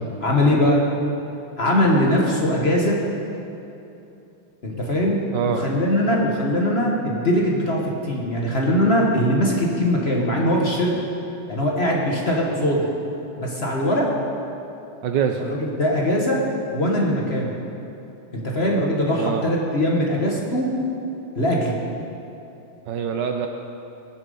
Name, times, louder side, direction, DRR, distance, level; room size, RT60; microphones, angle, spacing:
voice 1, 0.2-0.8 1.6-3.0 4.6-5.2 5.5-10.9 11.5-12.9 13.4-14.1 15.4-16.4 16.7-17.5 18.3-20.7 21.3-21.8, equal, 35° left, -2 dB, 1.4 m, -21 dB
voice 2, 5.3-5.6 15.0-15.4 19.1-19.5 22.9-23.5, right 8 dB, 70° right, 5 dB, 1.1 m, -24 dB
19.0 x 7.1 x 5.4 m, 2.8 s
omnidirectional pair, 2.3 m